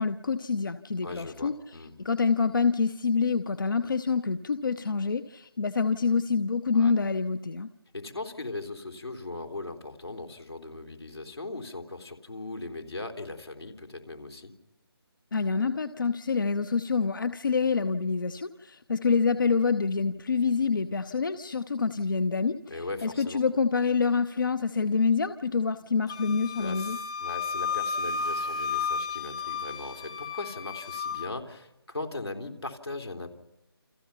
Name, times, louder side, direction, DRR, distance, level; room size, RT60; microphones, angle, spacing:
voice 1, 0.0-1.5 2.0-7.7 15.3-27.0, left 5 dB, 55° left, 12 dB, 0.8 m, -26 dB
voice 2, 1.0-1.9 6.7-6.9 7.9-14.5 22.7-23.4 26.6-33.3, left 2 dB, 80° left, 4 dB, 3.6 m, -39 dB
Wind instrument woodwind instrument, 26.1-31.3, left 5 dB, 15° left, 0.9 m, -33 dB
29.0 x 26.5 x 5.8 m, 0.93 s
figure-of-eight pair, 155°, 13 cm